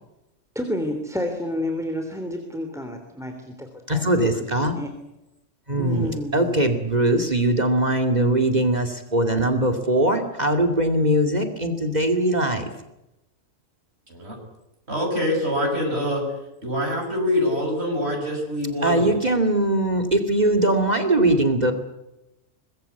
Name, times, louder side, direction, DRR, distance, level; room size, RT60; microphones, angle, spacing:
voice 1, 0.5-4.9 5.8-6.6, left 1 dB, ahead, 5 dB, 3.1 m, -30 dB
voice 2, 3.9-4.8 5.7-12.7 18.8-21.7, right 1 dB, 30° right, 9 dB, 2.6 m, -21 dB
voice 3, 5.8-6.1 14.1-14.4 14.9-16.2 16.6-19.2, left 1 dB, 50° right, 1 dB, 6.7 m, -25 dB
24.5 x 21.5 x 8.3 m, 0.92 s
omnidirectional pair, 1.3 m